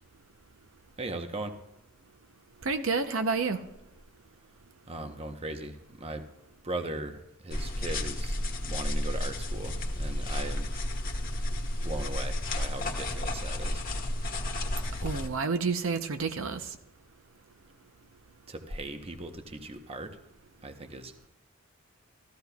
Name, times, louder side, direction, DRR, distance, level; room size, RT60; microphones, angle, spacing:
voice 1, 1.0-1.6 4.9-6.2 6.6-10.7 11.8-13.8 18.5-20.2 20.6-21.1, right 2 dB, 30° right, 7 dB, 0.9 m, -38 dB
voice 2, 2.6-3.6 15.0-16.6, right 4 dB, 70° right, 8 dB, 0.7 m, -29 dB
sound 1, 7.5-15.3, left 1 dB, 45° left, 1.2 m, -32 dB
15.5 x 13.5 x 2.3 m, 0.91 s
head